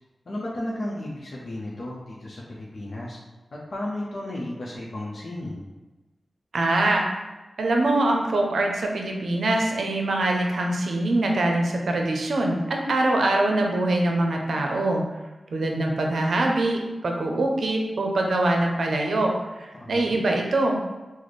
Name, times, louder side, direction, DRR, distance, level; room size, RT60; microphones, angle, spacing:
voice 1, 0.3-3.2 3.5-5.7 19.7-20.2, left 1 dB, 65° left, -5 dB, 0.6 m, -34 dB
voice 2, 6.5-7.1 7.6-15.0 15.5-20.9, right 2 dB, 85° right, 1 dB, 0.5 m, -23 dB
3.1 x 2.1 x 4.1 m, 1.1 s
wide cardioid pair, 70°, 0 cm